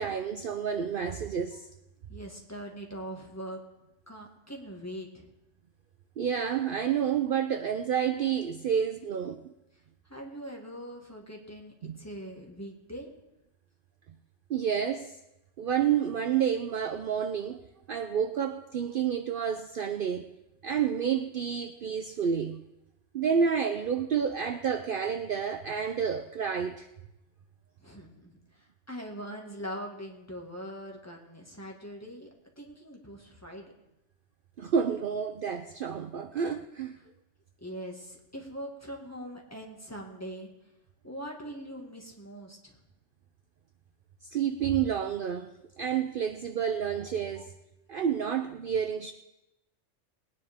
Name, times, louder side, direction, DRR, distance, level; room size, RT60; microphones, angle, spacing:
voice 1, 0.0-1.7 6.2-9.4 11.8-12.0 14.5-15.2 15.6-17.6 17.9-20.3 20.6-22.6 23.1-26.9 34.6-37.0 44.3-45.5 45.8-47.5 47.9-49.1, right 7 dB, 55° right, 6 dB, 0.7 m, -29 dB
voice 2, 2.1-3.6 4.1-5.3 10.1-13.1 27.8-32.3 32.6-33.7 37.6-40.5 41.0-42.8, equal, 15° left, 0 dB, 1.9 m, -42 dB
20.5 x 9.8 x 3.6 m, 0.92 s
omnidirectional pair, 1.2 m